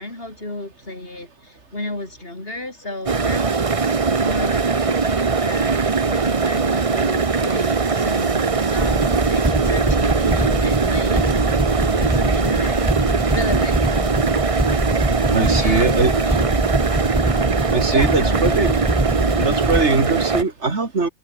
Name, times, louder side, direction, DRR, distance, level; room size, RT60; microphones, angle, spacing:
voice 1, 0.0-5.7 6.0-13.0 13.3-13.8 15.5-16.6 17.9-18.5, left 2 dB, 55° left, 4.9 m, -33 dB
sound 1, 3.1-20.4, right 4 dB, 30° right, 1.0 m, -21 dB
sound 2, 8.8-19.8, right 1 dB, 10° right, 0.4 m, -23 dB
voice 2, 15.3-16.2 17.7-18.7 19.4-21.1, right 3 dB, 75° right, 3.0 m, -21 dB
omnidirectional pair, 1.2 m